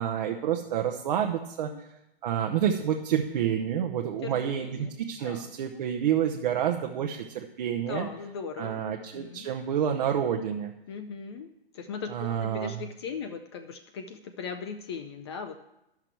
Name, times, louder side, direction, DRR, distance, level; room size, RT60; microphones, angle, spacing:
voice 1, 0.0-1.9 2.2-8.1 8.6-10.7 12.1-12.7, right 9 dB, 45° right, 3 dB, 0.7 m, -29 dB
voice 2, 4.2-4.9 5.2-5.8 7.9-9.5 10.9-15.6, left 5 dB, 30° left, 7 dB, 0.4 m, -39 dB
12.0 x 5.9 x 4.5 m, 0.88 s
hypercardioid pair, 135°, 30 cm